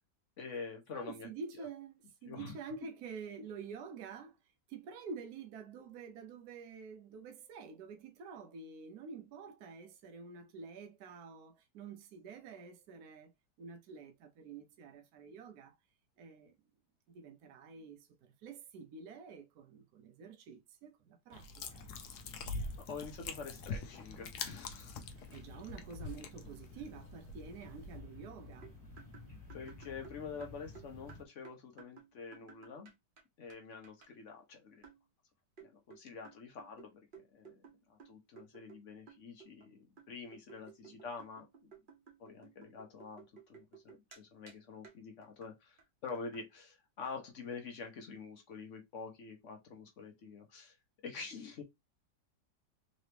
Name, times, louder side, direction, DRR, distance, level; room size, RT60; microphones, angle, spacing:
voice 1, 0.4-1.3 1.6-1.7 2.2-2.6 22.8-25.1 29.5-32.9 33.4-34.8 35.6-37.6 37.9-41.7 42.2-50.8 51.0-51.6, left 5 dB, 55° left, 1.0 m, -47 dB
voice 2, 0.9-4.4 4.7-15.7 16.2-16.6 17.1-21.9 25.3-28.7 40.8-41.0, right 5 dB, 70° right, 1.1 m, -48 dB
sound 1, 21.3-28.0, left 4 dB, 70° left, 1.2 m, -44 dB
sound 2, 21.6-31.2, left 3 dB, 25° left, 1.5 m, -53 dB
sound 3, 28.6-33.2 33.5-33.6 33.8-34.1 34.8-35.0 35.6-38.8 39.1-39.7 40.0-44.2 44.5-44.6 44.8-45.0 45.2-45.5 45.8-45.9 46.1-46.4, right 6 dB, 40° right, 0.9 m, -57 dB
3.8 x 2.9 x 3.3 m
omnidirectional pair, 1.8 m